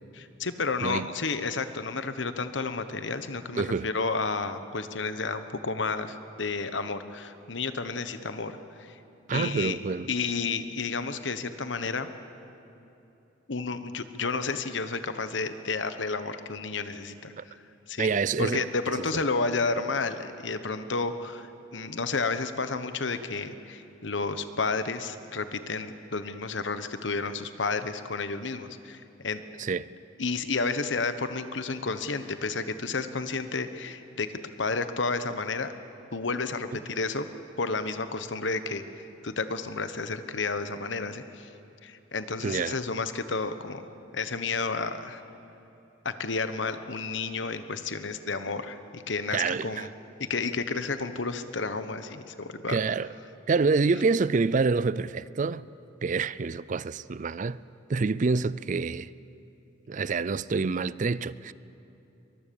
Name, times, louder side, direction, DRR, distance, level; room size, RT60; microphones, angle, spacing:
voice 1, 0.1-8.9 9.3-9.8 10.1-12.1 13.5-17.6 17.9-18.1 18.4-29.4 30.2-34.3 34.6-35.7 36.1-37.3 37.6-41.5 41.8-43.8 44.1-45.2 46.0-49.9 50.2-52.8, left 4 dB, 70° left, 1.2 m, -31 dB
voice 2, 3.5-3.9 9.3-10.1 17.4-17.5 18.0-18.7 29.6-29.9 42.4-42.8 49.3-49.9 52.7-53.1 53.5-55.7 56.0-57.6 57.9-59.1 59.9-61.5, right 4 dB, 40° right, 0.4 m, -27 dB
23.5 x 21.0 x 7.0 m
head